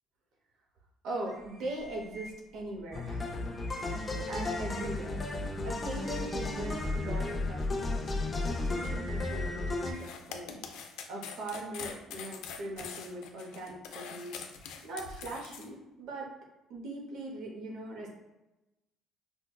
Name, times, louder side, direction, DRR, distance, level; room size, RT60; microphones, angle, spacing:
voice 1, 1.0-3.3 4.3-5.2 5.6-8.1 8.5-10.6 11.1-14.4 14.8-16.3 16.7-18.1, right 2 dB, 70° right, 0 dB, 0.8 m, -40 dB
sound 1, 1.2-2.8 3.2-3.3 3.5-5.1 5.6-10.0, equal, 25° right, 0.8 m, -48 dB
sound 2, 2.9-9.9, left 2 dB, 25° left, 0.5 m, -33 dB
sound 3, 9.9-15.7, left 7 dB, 85° left, 0.4 m, -44 dB
5.2 x 2.2 x 2.2 m, 0.97 s
cardioid pair, 110°, 0 cm